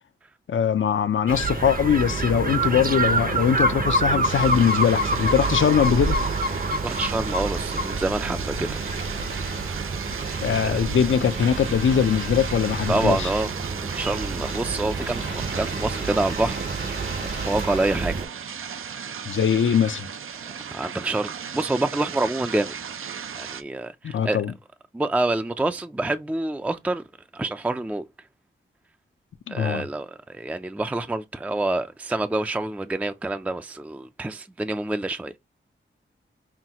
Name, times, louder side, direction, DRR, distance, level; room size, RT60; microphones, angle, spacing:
voice 1, 0.5-6.2 10.4-13.3 19.3-20.1 24.0-24.5 29.5-29.8, left 8 dB, 65° left, 0.6 m, -21 dB
sound 1, 1.3-18.2, right 2 dB, 40° right, 0.8 m, -27 dB
sound 2, 4.2-23.6, right 7 dB, 75° right, 0.5 m, -36 dB
voice 2, 6.8-8.9 10.6-10.8 12.9-13.5 13.9-16.7 17.5-18.3 20.7-22.7 23.4-24.4 24.9-27.0 27.3-28.0 29.5-35.4, right 2 dB, 5° right, 0.4 m, -27 dB
sound 3, 8.4-10.8 11.0-13.6 13.9-18.1, right 2 dB, 60° right, 1.2 m, -39 dB
5.8 x 2.3 x 2.8 m
cardioid pair, 60°, 21 cm